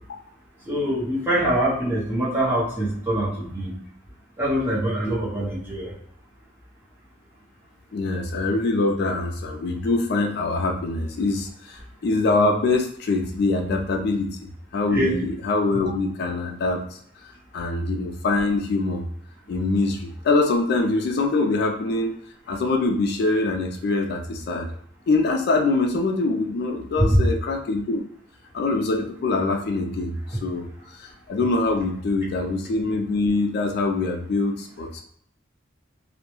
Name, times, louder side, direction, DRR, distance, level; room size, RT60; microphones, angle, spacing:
voice 1, 0.7-3.7 4.4-5.9 14.9-15.2, right 1 dB, 10° right, -7 dB, 0.8 m, -24 dB
voice 2, 7.9-16.8 17.5-19.0 19.5-22.1 22.5-24.7 25.1-28.0 28.5-30.7 31.0-35.0, left 3 dB, 55° left, 2 dB, 0.3 m, -24 dB
2.2 x 2.0 x 2.9 m, 0.64 s
head